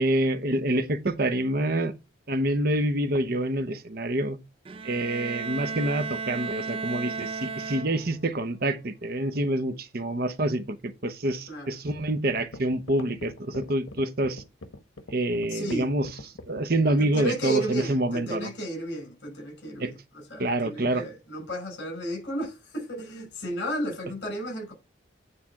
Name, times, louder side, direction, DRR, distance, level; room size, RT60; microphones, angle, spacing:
voice 1, 0.0-1.9 2.3-4.4 4.8-10.8 11.0-14.4 15.1-16.1 16.5-18.5 19.8-19.9 20.4-21.0, right 1 dB, 50° right, 0.9 m, -27 dB
Bowed string instrument, 4.6-8.3, right 4 dB, 30° right, 0.3 m, -34 dB
sound 1, 12.4-17.0, left 2 dB, 85° left, 1.2 m, -42 dB
voice 2, 15.5-15.9 17.0-24.7, right 1 dB, 65° left, 5.6 m, -33 dB
9.7 x 3.4 x 5.8 m
head